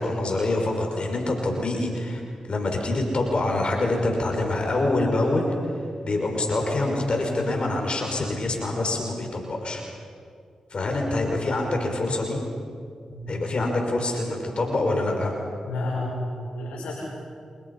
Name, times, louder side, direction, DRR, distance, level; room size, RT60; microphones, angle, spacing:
voice 1, 0.0-2.2 2.5-5.5 5.8-9.8 10.7-12.4 13.3-15.3, left 2 dB, 55° left, 2 dB, 6.1 m, -25 dB
voice 2, 15.6-17.1, left 1 dB, 85° left, -4 dB, 5.6 m, -31 dB
29.5 x 27.0 x 5.8 m, 2.2 s
supercardioid pair, 40°, 2 cm